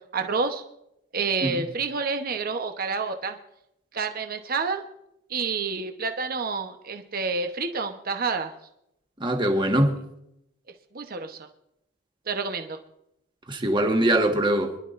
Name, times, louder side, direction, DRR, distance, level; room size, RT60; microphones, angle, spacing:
voice 1, 0.1-0.6 1.1-3.4 3.9-4.8 5.3-8.5 10.9-11.4 12.3-12.8, right 4 dB, 50° right, 1.0 m, -28 dB
voice 2, 9.2-10.0 13.5-14.7, right 1 dB, 25° right, 1.6 m, -22 dB
25.0 x 11.5 x 2.6 m
head